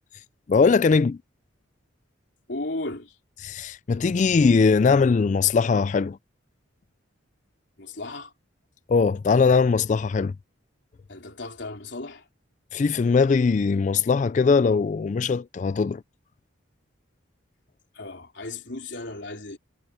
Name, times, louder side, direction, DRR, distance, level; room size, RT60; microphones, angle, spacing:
voice 1, 0.5-1.2 3.4-6.2 8.9-10.3 12.7-16.0, left 5 dB, 35° left, 0.3 m, -20 dB
voice 2, 2.5-3.2 7.8-8.3 11.1-12.3 17.9-19.6, left 2 dB, 60° left, 3.7 m, -35 dB
head